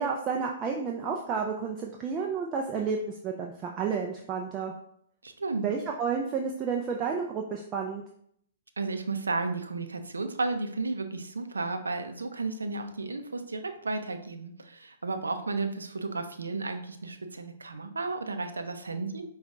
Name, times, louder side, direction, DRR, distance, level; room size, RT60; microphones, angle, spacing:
voice 1, 0.0-4.7 5.6-8.0, right 5 dB, 25° right, 1 dB, 0.4 m, -31 dB
voice 2, 5.2-5.7 8.8-19.2, right 3 dB, 90° right, 7 dB, 0.5 m, -33 dB
5.3 x 2.3 x 3.6 m, 0.69 s
hypercardioid pair, 125°, 0 cm